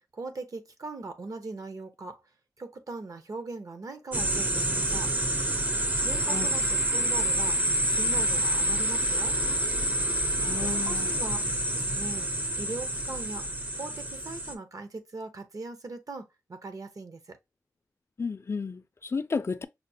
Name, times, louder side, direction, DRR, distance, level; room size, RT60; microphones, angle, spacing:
voice 1, 0.0-2.2 2.6-5.1 6.0-7.6 7.9-9.4 10.6-11.4 11.7-12.3 12.6-13.5 13.8-17.4, right 3 dB, 60° right, 0.7 m, -40 dB
sound 1, 4.1-14.5, right 1 dB, 25° right, 0.5 m, -27 dB
voice 2, 10.4-11.1 18.2-19.7, left 4 dB, 40° left, 0.4 m, -33 dB
5.7 x 2.1 x 2.7 m
wide cardioid pair, 90°, 7 cm